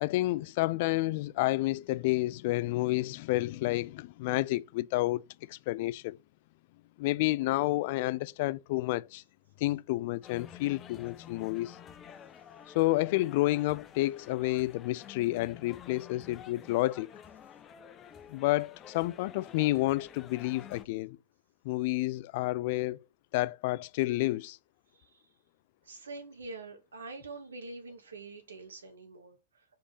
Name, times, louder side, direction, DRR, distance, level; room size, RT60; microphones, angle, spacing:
voice 1, 0.0-5.2 5.5-6.2 7.0-9.2 9.6-11.8 12.7-17.1 18.3-21.2 21.6-23.0 23.3-24.6, left 18 dB, 55° left, 0.4 m, -30 dB
sound 1, 10.2-20.8, left 8 dB, 30° left, 0.9 m, -50 dB
voice 2, 25.8-29.6, right 3 dB, 80° right, 2.0 m, -45 dB
5.1 x 5.0 x 5.5 m
figure-of-eight pair, 95°, 0 cm